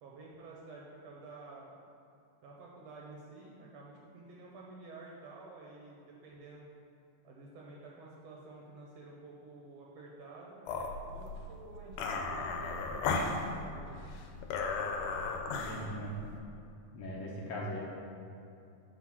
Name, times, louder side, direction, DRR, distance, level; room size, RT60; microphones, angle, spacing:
voice 1, 0.0-1.9 2.4-6.7 7.2-14.0, right 3 dB, 70° right, -2 dB, 1.7 m, -51 dB
sound 1, 10.7-16.4, left 4 dB, 90° left, 2.2 m, -36 dB
voice 2, 15.5-16.2 16.9-17.8, equal, 65° left, -4 dB, 2.1 m, -40 dB
9.0 x 4.4 x 5.9 m, 2.6 s
omnidirectional pair, 3.6 m